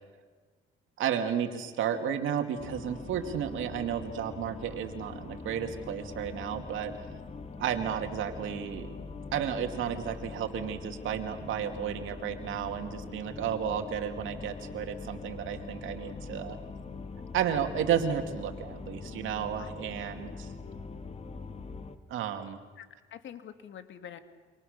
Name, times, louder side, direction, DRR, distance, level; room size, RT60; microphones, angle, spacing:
voice 1, 1.0-7.1 7.6-9.0 9.3-16.6 17.3-20.5 22.1-22.6, right 8 dB, 80° right, 6 dB, 2.5 m, -32 dB
sound 1, 2.6-22.0, left 4 dB, 30° left, 1.8 m, -43 dB
voice 2, 22.8-24.2, left 9 dB, 70° left, 9 dB, 2.1 m, -46 dB
28.5 x 25.5 x 6.7 m, 1.4 s
cardioid pair, 90°, 20 cm